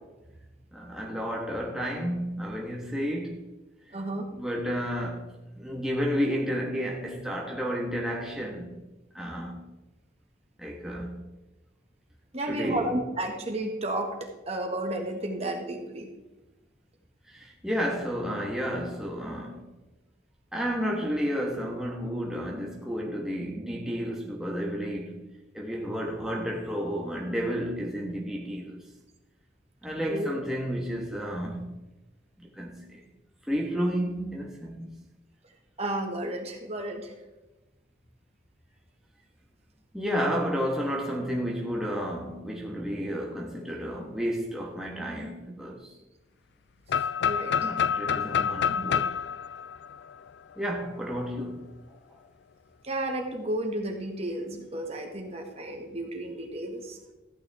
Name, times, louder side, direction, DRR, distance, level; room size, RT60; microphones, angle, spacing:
voice 1, 0.7-3.4 3.9-5.3 5.6-8.8 9.1-9.6 10.6-11.2 12.5-12.9 17.3-19.6 20.5-25.2 25.5-28.8 29.8-31.8 32.4-33.0 33.4-34.9 39.9-45.9 47.5-49.2 50.6-52.2, equal, 5° right, 1.3 m, -31 dB
voice 2, 3.9-4.3 12.3-16.1 30.1-30.3 35.8-37.1 47.2-47.7 52.8-57.0, right 1 dB, 35° right, 1.7 m, -32 dB
sound 1, 46.9-50.7, left 7 dB, 65° left, 0.3 m, -28 dB
14.5 x 9.5 x 3.5 m
head